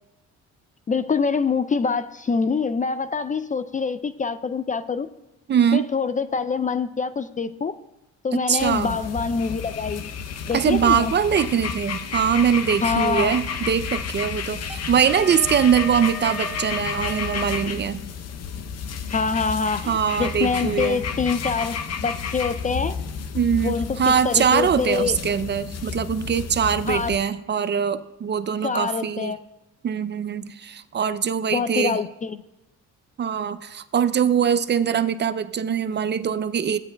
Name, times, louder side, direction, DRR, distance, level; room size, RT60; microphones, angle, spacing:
voice 1, 0.9-5.1 5.7-7.7 8.2-10.1 10.5-11.1 12.8-13.3 19.1-21.8 22.0-23.0 23.6-25.2 26.9-27.1 28.6-29.4 31.5-32.4, left 5 dB, 25° left, 12 dB, 0.3 m, -25 dB
voice 2, 5.5-5.9 8.3-8.9 10.5-18.0 19.9-21.0 23.3-29.3 29.8-32.0 33.2-36.8, right 8 dB, 35° right, 12 dB, 0.4 m, -22 dB
sound 1, 8.6-27.2, left 6 dB, 60° left, 0.7 m, -31 dB
Wind instrument woodwind instrument, 14.6-17.7, left 1 dB, ahead, 1.1 m, -35 dB
15.0 x 8.8 x 2.2 m, 0.91 s
cardioid pair, 90°, 30 cm